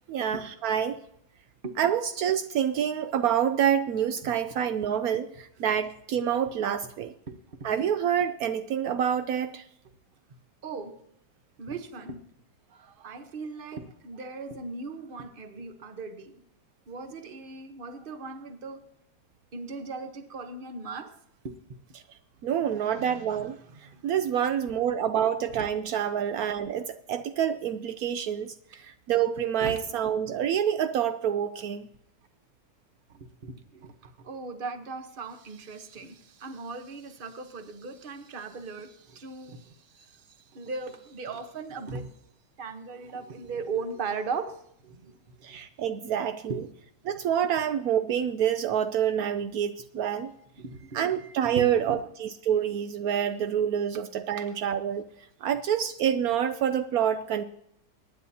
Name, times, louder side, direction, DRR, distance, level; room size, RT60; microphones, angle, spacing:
voice 1, 0.1-1.0 1.8-7.1 7.6-9.6 22.4-23.6 24.0-31.9 45.4-46.6 47.0-50.3 50.9-55.0 55.4-57.4, right 9 dB, 85° right, 10 dB, 0.7 m, -27 dB
voice 2, 4.2-4.5 7.3-7.7 10.6-11.0 11.6-12.3 12.7-16.4 16.9-18.8 19.5-21.1 21.4-21.5 22.6-24.0 25.5-25.6 29.6-29.8 33.4-40.3 40.5-42.1 42.6-44.6 44.8-45.6 46.4-46.7 50.6-52.0 54.4-54.5, right 4 dB, 35° right, 8 dB, 0.9 m, -38 dB
23.0 x 10.0 x 2.8 m, 0.74 s
omnidirectional pair, 2.2 m